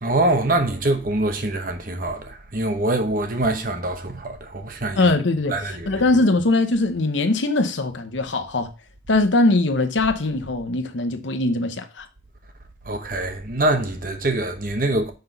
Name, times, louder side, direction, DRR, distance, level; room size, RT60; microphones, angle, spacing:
voice 1, 0.0-5.0 5.5-6.0 12.9-15.1, right 2 dB, 45° right, 1.0 m, -24 dB
voice 2, 5.0-8.7 9.1-12.1, left 2 dB, 75° left, 0.9 m, -21 dB
5.9 x 5.4 x 3.9 m
head